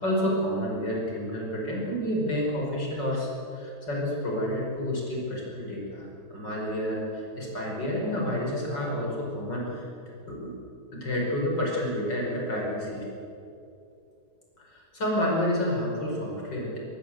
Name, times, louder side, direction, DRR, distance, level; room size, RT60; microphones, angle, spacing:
voice 1, 0.0-9.9 10.3-10.5 10.9-13.1 14.6-16.8, equal, 85° left, -2 dB, 6.2 m, -29 dB
24.0 x 18.0 x 7.9 m, 2.7 s
omnidirectional pair, 1.9 m